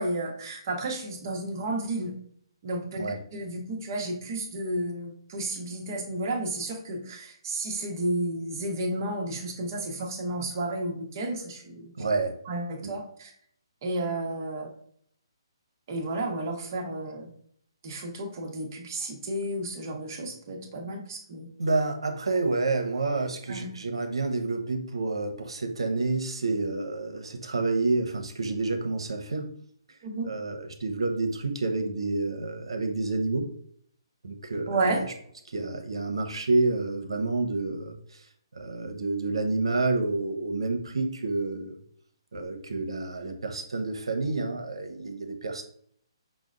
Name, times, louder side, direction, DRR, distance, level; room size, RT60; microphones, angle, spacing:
voice 1, 0.0-2.2 2.6-3.1 3.3-11.9 12.5-13.3 13.8-14.7 15.9-17.3 17.8-21.5 23.5-23.7 30.0-30.3 34.7-35.0, right 2 dB, 40° right, 2 dB, 0.9 m, -32 dB
voice 2, 12.0-12.4 12.8-13.0 21.6-29.5 29.9-30.0 30.3-33.5 34.2-35.1 35.5-41.8 42.3-45.6, right 3 dB, 85° right, 6 dB, 0.8 m, -29 dB
6.0 x 2.1 x 2.5 m, 0.63 s
hypercardioid pair, 155°, 3 cm